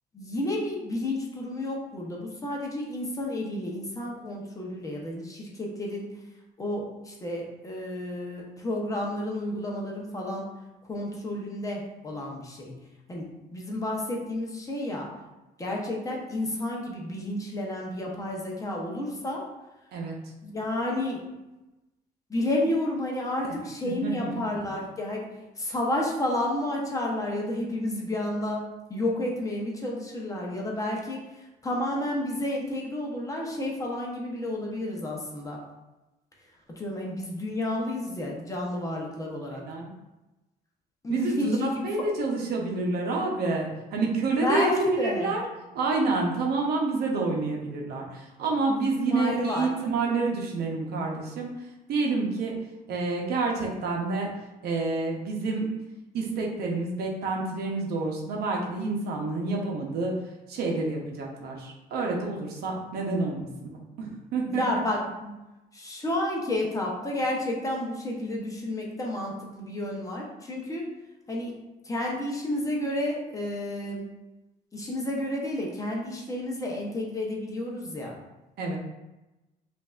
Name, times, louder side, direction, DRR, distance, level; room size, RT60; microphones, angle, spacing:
voice 1, 0.1-6.1 6.6-10.5 10.8-12.7 13.1-15.1 15.6-19.4 20.4-21.3 22.3-35.6 36.7-39.7 41.0-42.0 44.4-45.3 48.7-49.7 64.5-65.4 65.7-70.9 71.3-71.5 71.8-74.0 74.7-78.2, left 1 dB, 20° left, -1 dB, 0.8 m, -31 dB
voice 2, 23.8-24.4 39.5-39.9 41.1-45.4 45.7-51.5 51.9-52.5 52.9-54.3 54.6-55.7 56.1-60.1 60.5-64.6 78.6-78.8, right 3 dB, 70° right, -1 dB, 0.8 m, -28 dB
5.2 x 2.6 x 2.4 m, 1.0 s
cardioid pair, 110°, 17 cm